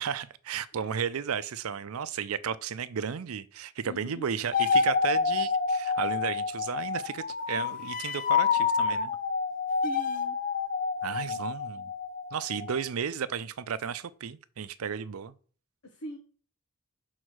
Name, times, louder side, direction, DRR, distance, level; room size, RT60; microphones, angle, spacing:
voice 1, 0.0-9.1 11.0-11.9 12.3-15.3, right 7 dB, 90° right, 0.5 m, -34 dB
voice 2, 3.8-4.2 9.7-10.4 11.1-11.4 15.8-16.2, left 2 dB, 80° left, 1.3 m, -42 dB
sound 1, 4.5-12.8, left 5 dB, 40° left, 0.6 m, -28 dB
6.3 x 4.0 x 6.3 m
head